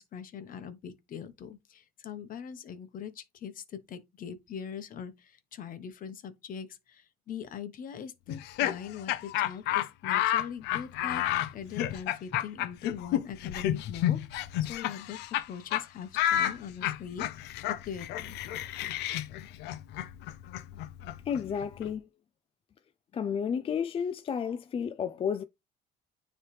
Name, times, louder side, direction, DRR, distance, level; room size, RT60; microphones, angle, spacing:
voice 1, 0.0-14.2 14.6-15.2 15.5-18.4, left 8 dB, 55° left, 1.0 m, -42 dB
Laughter, 8.3-15.4 15.7-15.8 16.1-21.9, left 12 dB, 85° left, 0.5 m, -31 dB
voice 2, 21.3-22.1 23.1-25.4, left 7 dB, 35° left, 0.4 m, -31 dB
9.5 x 3.2 x 3.2 m
cardioid pair, 110°, 17 cm